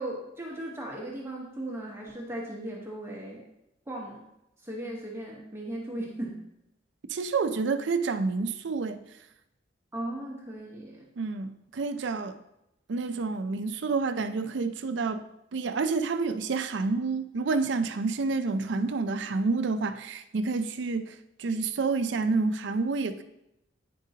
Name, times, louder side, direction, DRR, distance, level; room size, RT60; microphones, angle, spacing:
voice 1, 0.0-3.5 3.9-4.3 4.6-6.4 9.9-11.1, right 1 dB, 15° right, -2 dB, 1.0 m, -37 dB
voice 2, 7.1-9.0 11.2-12.4 12.9-15.3 15.5-23.2, right 4 dB, 65° right, 10 dB, 0.4 m, -29 dB
9.0 x 5.2 x 2.8 m, 0.86 s
head